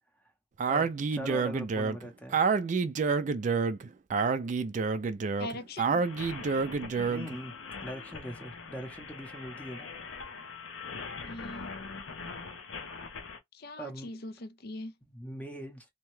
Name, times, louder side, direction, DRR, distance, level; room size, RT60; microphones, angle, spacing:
Speech, 0.6-7.3, right 4 dB, 40° right, 0.3 m, -28 dB
voice 1, 0.7-2.4 7.1-7.5 7.8-9.9 13.8-14.1 15.0-15.8, equal, 5° left, 0.7 m, -41 dB
voice 2, 5.4-6.1 11.2-11.7 13.5-14.9, left 2 dB, 55° left, 0.5 m, -41 dB
sound 1, 6.0-13.4, left 4 dB, 90° left, 0.7 m, -42 dB
2.8 x 2.2 x 3.1 m
head